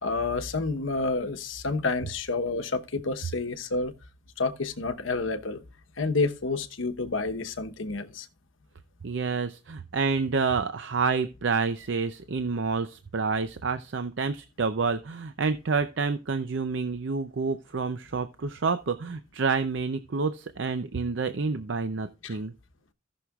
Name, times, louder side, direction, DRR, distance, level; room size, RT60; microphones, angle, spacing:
voice 1, 0.0-3.9 4.4-5.6 6.0-8.3 22.2-22.4, left 3 dB, 85° left, 1.0 m, -29 dB
voice 2, 9.0-22.5, right 4 dB, 65° right, 0.6 m, -28 dB
17.0 x 6.3 x 2.4 m
head